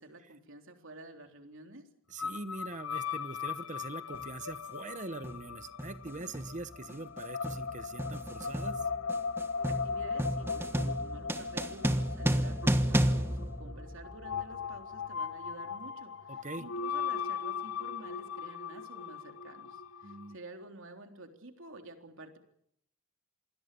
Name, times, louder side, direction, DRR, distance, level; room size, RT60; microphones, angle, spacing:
voice 1, 0.0-1.9 9.7-22.4, right 2 dB, 60° right, 5 dB, 3.6 m, -50 dB
voice 2, 2.1-8.9 16.3-16.7 20.0-20.4, right 3 dB, 35° right, 12 dB, 1.1 m, -43 dB
sound 1, 2.2-20.3, left 6 dB, 70° left, 1.1 m, -38 dB
sound 2, 4.1-4.3 5.2-5.5 5.8-14.3, equal, 10° right, 1.2 m, -32 dB
27.5 x 20.5 x 6.9 m, 0.71 s
head